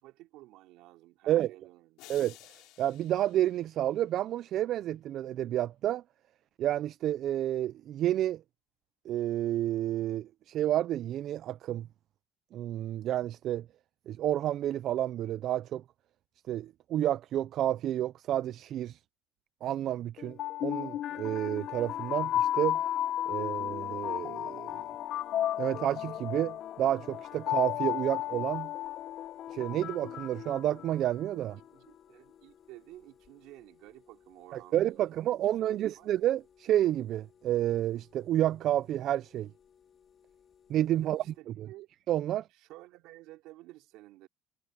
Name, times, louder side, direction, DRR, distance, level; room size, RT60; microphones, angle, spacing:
voice 1, 0.0-2.1 31.7-35.2 35.5-36.1 41.0-41.9 42.5-44.3, right 18 dB, 70° right, 4.7 m, -53 dB
sound 1, 2.0-4.3, left 18 dB, 75° left, 3.4 m, -55 dB
voice 2, 2.8-6.0 6.6-8.4 9.1-11.9 12.5-13.7 14.1-15.8 16.5-19.0 19.6-22.8 23.3-24.8 25.6-28.7 29.5-31.6 34.5-39.5 40.7-41.2 41.6-41.7 42.1-42.5, right 12 dB, 50° right, 0.4 m, -30 dB
sound 2, 20.2-31.3, left 12 dB, 50° left, 0.7 m, -34 dB
sound 3, 21.6-41.4, left 7 dB, 35° left, 3.6 m, -63 dB
cardioid pair, 140°, 0 cm